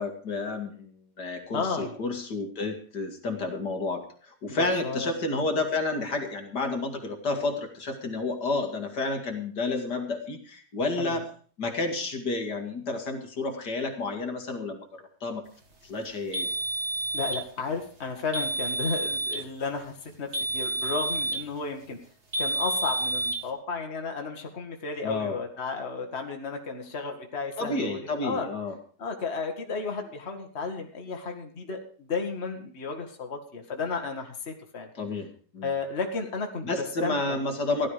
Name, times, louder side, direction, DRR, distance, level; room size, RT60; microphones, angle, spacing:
voice 1, 0.0-11.3 11.6-15.4 15.8-16.5 25.0-25.4 27.6-28.8 34.9-35.7 36.6-37.9, left 3 dB, 70° left, 4 dB, 2.7 m, -30 dB
voice 2, 1.5-1.9 4.5-5.1 11.0-11.2 17.1-22.0 22.4-28.5 29.0-34.9 35.6-36.6 37.0-37.4, left 4 dB, 40° left, 3 dB, 2.1 m, -33 dB
sound 1, 16.3-17.5 18.3-19.5 20.3-21.5 22.3-23.5, right 2 dB, 40° right, 2.2 m, -29 dB
16.0 x 12.0 x 5.0 m, 0.43 s
omnidirectional pair, 1.9 m